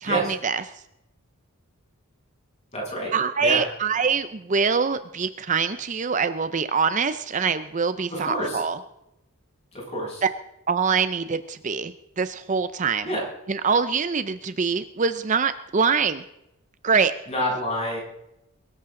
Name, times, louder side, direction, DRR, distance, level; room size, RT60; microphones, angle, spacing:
voice 1, 0.0-0.6 3.1-8.8 10.2-10.3 10.7-13.1 13.5-16.2 16.8-17.1, right 5 dB, 35° right, 12 dB, 0.5 m, -24 dB
voice 2, 2.7-3.1 3.4-3.6 8.1-8.6 9.9-10.2 13.0-13.2 17.3-18.0, equal, 30° left, -4 dB, 7.3 m, -27 dB
22.5 x 13.5 x 3.8 m, 0.86 s
head